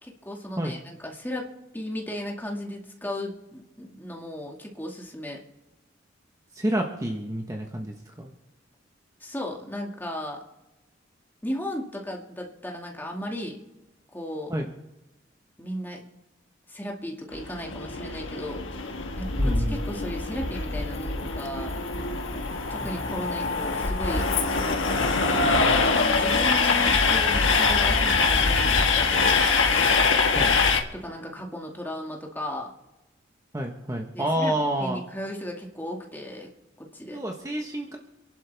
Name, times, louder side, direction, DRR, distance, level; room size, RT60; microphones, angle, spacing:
voice 1, 0.0-5.4 9.2-10.4 11.4-13.6 14.1-14.5 15.6-16.0 16.7-18.6 19.2-21.8 22.7-24.3 25.3-25.7 26.1-29.5 30.9-32.7 34.1-36.5 36.8-37.2, left 1 dB, 10° left, 0 dB, 2.2 m, -35 dB
voice 2, 6.5-8.3 14.5-14.7 19.4-19.8 30.3-30.5 33.5-35.0 37.1-38.0, right 1 dB, 20° right, 2 dB, 1.2 m, -29 dB
Train, 17.3-30.8, left 4 dB, 90° left, 1.5 m, -23 dB
28.0 x 11.5 x 3.5 m, 1.0 s
head